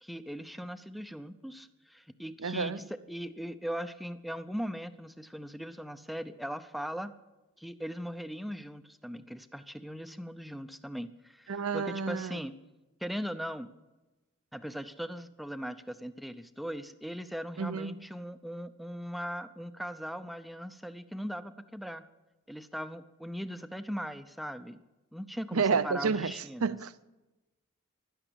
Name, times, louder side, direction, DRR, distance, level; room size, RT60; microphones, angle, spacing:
voice 1, 0.0-7.1 7.6-12.6 13.0-13.7 14.5-22.0 22.5-24.8 25.1-26.8, equal, ahead, 0.6 m, -39 dB
voice 2, 2.4-2.8 11.5-12.4 17.6-18.1 25.5-26.3 26.6-27.0, right 5 dB, 80° right, 0.7 m, -30 dB
16.0 x 12.0 x 6.9 m
head